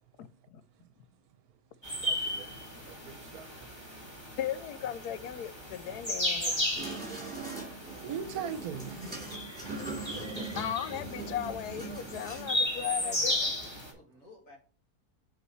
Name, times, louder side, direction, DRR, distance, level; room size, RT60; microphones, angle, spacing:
voice 1, 0.2-0.6 4.4-6.7 10.6-13.4, left 10 dB, 90° left, 1.1 m, -36 dB
sound 1, 1.8-13.9, left 1 dB, 15° left, 2.2 m, -35 dB
voice 2, 2.0-2.5 2.8-3.7 7.1-7.8 8.0-9.0 9.2-9.3 9.8-10.5, right 8 dB, 75° right, 1.2 m, -41 dB
sound 2, 6.8-12.5, right 3 dB, 5° right, 3.2 m, -41 dB
voice 3, 13.0-14.6, equal, 60° left, 2.6 m, -51 dB
8.0 x 4.8 x 3.1 m
omnidirectional pair, 1.6 m